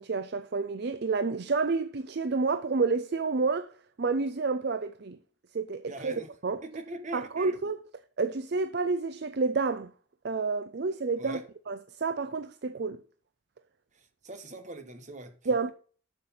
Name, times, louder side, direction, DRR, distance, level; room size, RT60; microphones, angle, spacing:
voice 1, 0.0-3.7 4.0-5.2 5.5-6.6 7.1-7.8 8.2-9.9 10.2-11.4 11.7-13.0 15.5-15.7, right 4 dB, 50° right, 0.5 m, -29 dB
voice 2, 5.9-6.3 6.6-7.6 11.2-11.4 14.2-15.3, right 2 dB, 35° right, 1.3 m, -41 dB
8.1 x 6.7 x 5.7 m
head